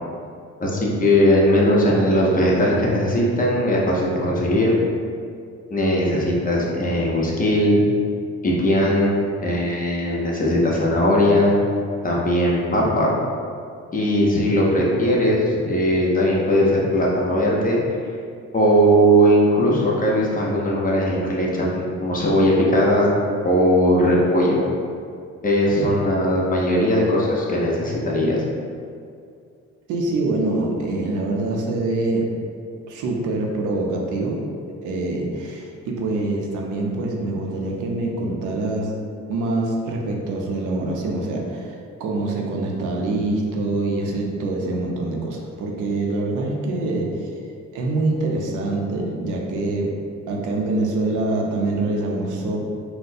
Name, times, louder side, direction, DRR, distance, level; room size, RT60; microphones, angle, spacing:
voice 1, 0.6-4.7 5.7-7.8 8.4-9.1 9.4-11.5 12.0-13.1 13.9-17.8 18.5-23.1 23.4-24.6 25.4-28.4, equal, 30° left, -4 dB, 0.7 m, -19 dB
voice 2, 29.9-32.3 32.9-34.4 34.8-38.9 39.3-47.3 47.7-49.9 50.3-52.7, right 2 dB, 80° right, 0 dB, 0.6 m, -25 dB
4.0 x 2.1 x 2.6 m, 2.3 s
cardioid pair, 90°, 30 cm